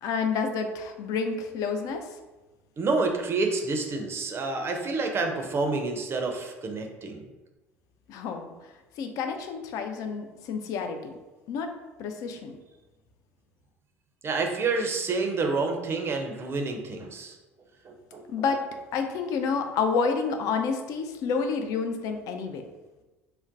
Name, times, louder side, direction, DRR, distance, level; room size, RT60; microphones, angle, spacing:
voice 1, 0.0-2.1 8.1-11.1 11.5-11.7 12.0-12.5 18.3-18.6 18.9-22.6, left 5 dB, 55° left, 6 dB, 0.4 m, -29 dB
voice 2, 2.8-7.2 14.2-17.4 17.8-18.3, right 3 dB, 35° right, 4 dB, 0.5 m, -28 dB
3.7 x 2.1 x 2.5 m, 1.1 s
figure-of-eight pair, 60°, 7 cm